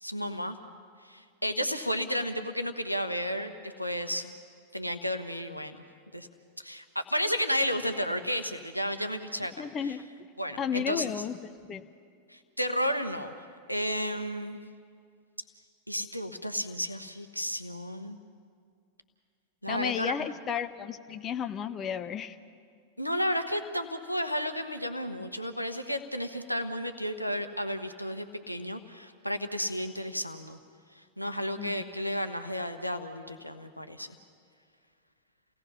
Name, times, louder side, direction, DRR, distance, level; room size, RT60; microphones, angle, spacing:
voice 1, 0.0-0.6 1.0-4.3 4.7-5.8 6.1-6.3 6.6-9.9 10.4-11.1 12.3-13.3 13.7-14.6 15.9-18.2 19.6-20.2 23.0-30.6 31.2-34.1, equal, 90° left, 8 dB, 1.2 m, -32 dB
voice 2, 9.6-10.1 10.6-11.8 19.7-22.4 31.6-31.8, left 8 dB, 30° left, 10 dB, 0.8 m, -33 dB
29.5 x 18.0 x 5.7 m, 2.2 s
figure-of-eight pair, 90°, 0 cm